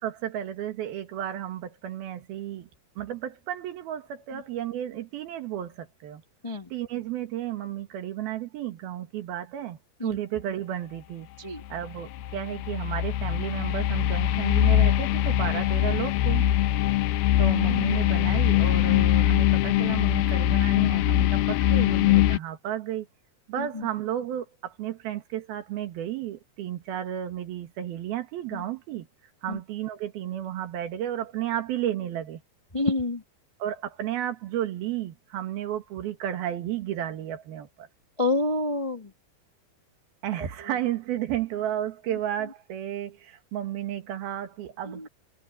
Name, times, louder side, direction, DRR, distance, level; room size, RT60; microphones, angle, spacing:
voice 1, 0.0-2.7 3.0-6.2 6.7-11.3 11.7-16.5 17.4-23.1 23.5-29.1 29.4-32.4 33.6-37.9 40.2-45.1, right 11 dB, 80° right, 3.6 m, -33 dB
sound 1, 11.7-22.4, left 13 dB, 85° left, 2.7 m, -22 dB
voice 2, 23.6-23.9 28.5-28.6 29.5-29.6 32.7-33.2 38.2-39.1 40.4-40.7 44.9-45.1, left 2 dB, 20° left, 0.8 m, -29 dB
omnidirectional pair, 4.3 m